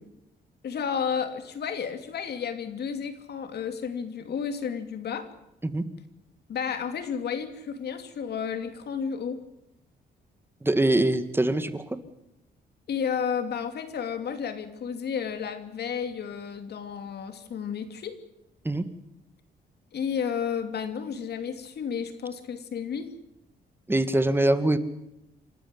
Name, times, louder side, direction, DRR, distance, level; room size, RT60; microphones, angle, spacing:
voice 1, 0.6-5.3 6.5-9.4 12.9-18.2 19.9-23.1, left 7 dB, 65° left, 9 dB, 2.7 m, -32 dB
voice 2, 10.6-12.0 18.7-18.8 23.9-24.8, right 1 dB, 10° right, 11 dB, 1.7 m, -23 dB
28.0 x 12.5 x 9.8 m, 0.86 s
cardioid pair, 105°, 18 cm